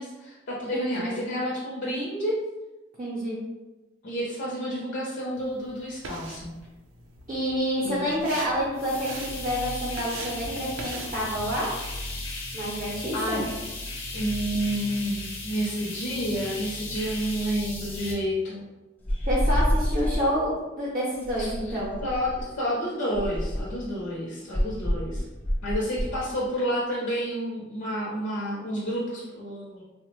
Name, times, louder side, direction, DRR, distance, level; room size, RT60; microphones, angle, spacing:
voice 1, 0.0-2.4 4.0-6.5 7.8-8.1 13.1-13.5 14.1-18.6 19.1-19.3 21.4-25.2 25.6-29.8, equal, 60° left, -5 dB, 0.6 m, -30 dB
voice 2, 0.7-1.2 3.0-3.4 7.3-11.7 12.5-13.4 19.3-21.9, equal, 35° right, -6 dB, 0.6 m, -28 dB
sound 1, 5.4-11.4, right 3 dB, 90° right, 0.4 m, -42 dB
sound 2, 8.7-18.1, left 2 dB, 90° left, 0.9 m, -36 dB
sound 3, 19.1-20.3 21.2-22.5 23.1-23.8 24.5-26.2, equal, 10° left, 0.3 m, -27 dB
3.2 x 2.1 x 3.0 m, 1.1 s
head